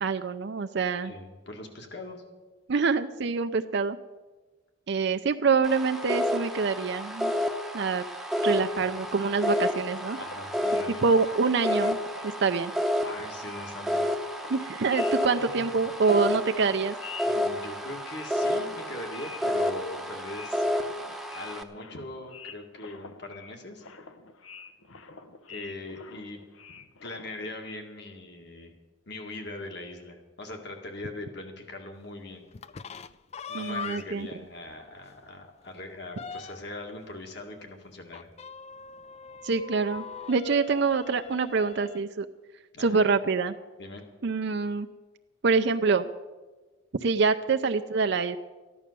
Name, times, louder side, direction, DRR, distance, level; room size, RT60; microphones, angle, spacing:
voice 1, 0.0-1.1 2.7-4.0 4.9-7.3 7.7-8.0 8.4-10.2 10.9-12.0 12.2-12.7 14.5-17.0 33.5-34.3 39.4-42.3 42.8-43.6 44.2-44.9 45.4-46.1 47.0-48.4, right 4 dB, 60° right, 8 dB, 0.5 m, -26 dB
voice 2, 1.0-2.2 10.2-11.0 13.0-14.1 15.4-15.5 17.2-20.7 21.3-23.8 25.5-26.4 27.0-28.7 29.1-32.4 33.5-38.3 42.7-43.0 43.8-44.0, left 2 dB, 55° left, 3 dB, 2.1 m, -41 dB
sound 1, 5.6-21.6, left 1 dB, ahead, 0.8 m, -30 dB
sound 2, 8.8-12.7 13.0-27.7, left 5 dB, 85° left, 1.0 m, -48 dB
sound 3, 32.5-34.3 34.8-34.9 35.2-35.3 35.6-36.8 38.1-42.0, left 5 dB, 30° left, 0.4 m, -42 dB
14.0 x 11.0 x 6.8 m, 1.3 s
head